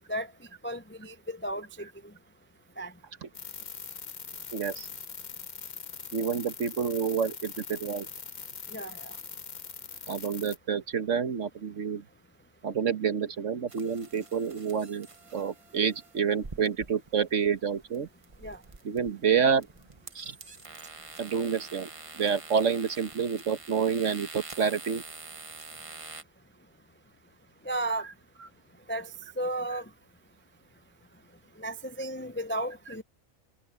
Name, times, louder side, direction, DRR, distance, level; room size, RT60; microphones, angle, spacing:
voice 1, 0.6-1.9 2.8-2.9 8.7-9.2 18.4-18.6 27.6-28.1 28.9-29.1 29.4-29.8 31.6-33.0, right 1 dB, 15° left, 0.4 m, -34 dB
sound 1, 3.3-10.6, left 6 dB, 40° left, 0.8 m, -42 dB
voice 2, 4.5-4.9 6.1-8.1 10.1-12.0 12.6-15.1 15.3-18.1 18.8-19.7 20.1-20.3 21.2-21.9 22.1-25.0, right 6 dB, 60° right, 1.5 m, -28 dB
sound 2, 13.7-26.2, right 3 dB, 25° right, 1.0 m, -46 dB
omnidirectional pair, 1.5 m